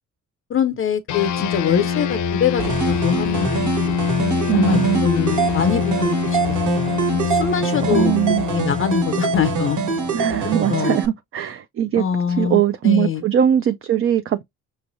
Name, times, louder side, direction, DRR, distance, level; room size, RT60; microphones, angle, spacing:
voice 1, 0.5-3.9 4.5-6.6 7.2-9.8 10.7-11.0 12.0-13.2, left 7 dB, 45° left, 0.5 m, -23 dB
sound 1, 1.1-10.8, left 7 dB, 85° left, 0.7 m, -24 dB
sound 2, 2.6-11.1, right 5 dB, 75° right, 1.6 m, -24 dB
voice 2, 4.5-5.0 7.9-8.4 10.1-12.0 12.4-14.4, right 10 dB, 45° right, 0.4 m, -20 dB
6.1 x 3.0 x 2.6 m
cardioid pair, 90°, 30 cm